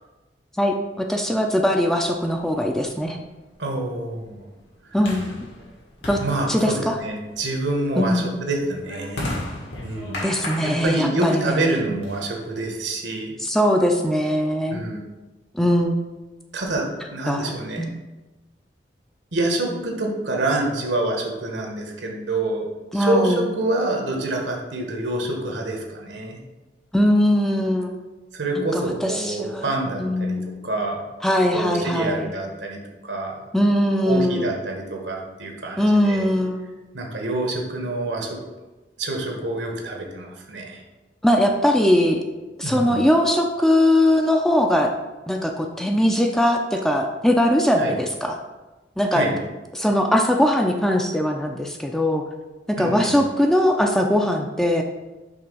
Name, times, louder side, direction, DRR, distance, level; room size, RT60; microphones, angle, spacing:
voice 1, 0.6-3.2 4.9-5.3 6.1-6.2 6.5-7.0 8.0-8.3 10.2-11.9 13.4-14.8 15.5-16.0 17.3-17.9 22.9-23.5 26.9-27.9 28.6-30.5 31.2-32.3 33.5-34.5 35.8-36.6 41.2-42.2 42.6-44.9 45.3-48.4 49.0-49.2 49.7-52.2 52.7-54.8, left 1 dB, ahead, 3 dB, 0.4 m, -20 dB
sound 1, 2.3-12.7, left 1 dB, 85° left, 2.0 m, -37 dB
voice 2, 3.6-4.4 6.2-9.4 9.8-10.3 10.6-13.3 14.7-15.0 16.5-17.9 19.3-22.7 22.9-26.4 28.3-30.4 30.6-31.0 31.5-33.4 34.1-36.2 36.9-38.4 39.0-40.8 42.6-43.1 47.8-48.0 49.1-49.4 52.8-53.2, right 2 dB, 75° right, 1 dB, 1.2 m, -27 dB
5.5 x 3.4 x 5.3 m, 1.1 s
head